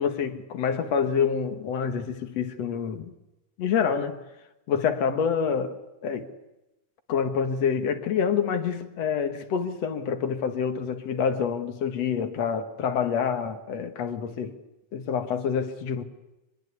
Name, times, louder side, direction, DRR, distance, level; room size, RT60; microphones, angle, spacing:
voice 1, 0.0-3.1 3.6-4.2 4.7-6.3 7.1-14.6 14.9-16.0, left 7 dB, 60° left, 2.6 m, -27 dB
25.0 x 21.0 x 8.4 m
omnidirectional pair, 3.4 m